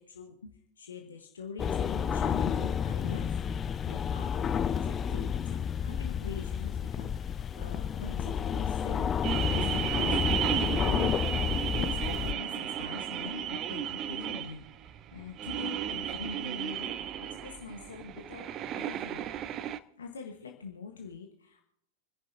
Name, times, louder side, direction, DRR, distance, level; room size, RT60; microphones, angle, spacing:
voice 1, 0.0-3.3 3.6-11.4 11.7-17.1 17.4-19.3 20.0-21.6, left 5 dB, 70° left, 3 dB, 1.5 m, -43 dB
sound 1, 1.6-12.3, left 7 dB, 25° left, 0.5 m, -30 dB
sound 2, 9.2-19.8, right 10 dB, 35° right, 0.6 m, -34 dB
28.5 x 10.5 x 2.8 m, 0.77 s
figure-of-eight pair, 90°, 0 cm